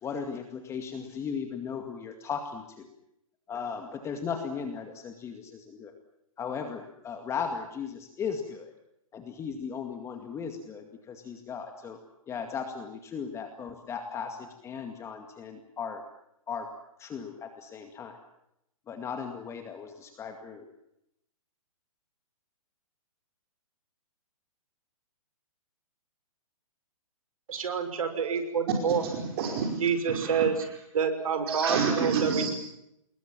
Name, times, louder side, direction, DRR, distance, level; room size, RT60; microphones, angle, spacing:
voice 1, 0.0-2.9 3.5-5.9 6.4-8.7 9.1-12.0 12.3-16.0 16.5-16.7 17.0-18.2 18.9-20.7, left 6 dB, 15° left, 5 dB, 2.2 m, -37 dB
voice 2, 27.5-29.0 29.8-30.5 30.9-32.5, right 6 dB, 70° right, 8 dB, 5.9 m, -27 dB
voice 3, 29.0-29.8 30.1-30.4 31.5-32.5, right 5 dB, 45° right, 2 dB, 5.1 m, -29 dB
28.0 x 21.0 x 7.5 m, 0.81 s
hypercardioid pair, 145°, 18 cm